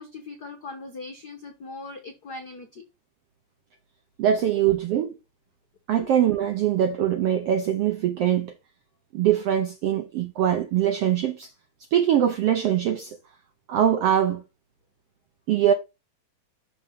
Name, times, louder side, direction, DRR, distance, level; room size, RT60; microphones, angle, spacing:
voice 1, 0.0-2.8 6.0-6.1, left 3 dB, 80° left, 0.9 m, -40 dB
voice 2, 4.2-5.2 5.9-8.5 9.1-11.5 11.9-13.2 13.7-14.4 15.5-15.7, right 10 dB, 80° right, 1.3 m, -22 dB
6.7 x 4.3 x 5.6 m
omnidirectional pair, 3.6 m